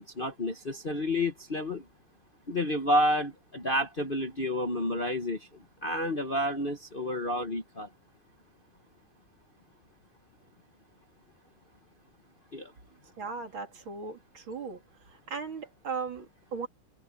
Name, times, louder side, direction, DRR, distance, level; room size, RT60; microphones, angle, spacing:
voice 1, 0.0-1.8 2.5-5.5 5.8-7.9 12.5-12.7, left 1 dB, 30° left, 1.1 m, -30 dB
voice 2, 13.2-14.8 15.1-16.7, right 5 dB, 65° right, 3.3 m, -37 dB
omnidirectional pair, 2.4 m